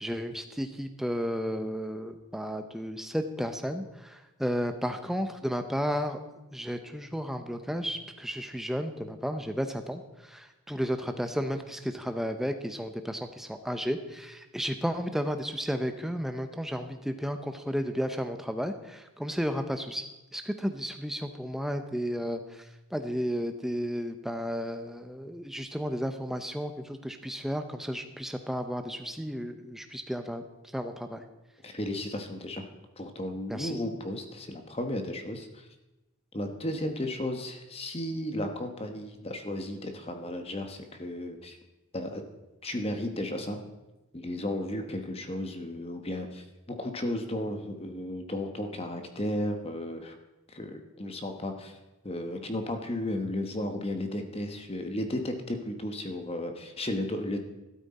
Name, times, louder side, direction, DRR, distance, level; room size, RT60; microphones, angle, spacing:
voice 1, 0.0-6.2 6.5-20.0 20.3-22.6 22.9-30.4 30.7-31.2 33.5-33.8, equal, ahead, 7 dB, 0.7 m, -33 dB
voice 2, 31.6-32.6 33.0-35.7 36.3-41.6 41.9-42.2 42.6-43.6 44.1-50.1 50.5-51.8 52.0-57.4, left 1 dB, 25° left, 6 dB, 1.1 m, -34 dB
12.5 x 12.5 x 4.2 m, 1.0 s
head